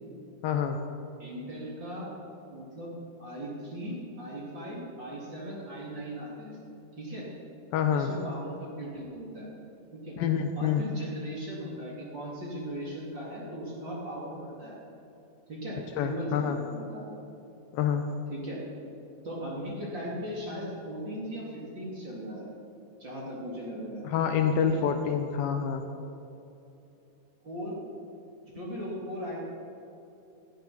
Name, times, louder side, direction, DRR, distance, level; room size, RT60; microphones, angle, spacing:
voice 1, 0.4-0.8 7.7-8.1 10.2-10.8 16.0-16.6 17.7-18.0 24.0-25.8, left 7 dB, 80° left, 6 dB, 2.5 m, -27 dB
voice 2, 1.2-2.1 2.5-6.6 7.0-7.3 7.9-9.5 9.9-10.2 10.6-14.7 15.5-17.2 18.3-18.6 19.2-22.5 23.0-24.0 24.6-24.8 27.4-27.8 28.5-29.4, equal, 30° right, -5 dB, 3.1 m, -38 dB
20.0 x 12.0 x 4.4 m, 2.8 s
omnidirectional pair, 4.4 m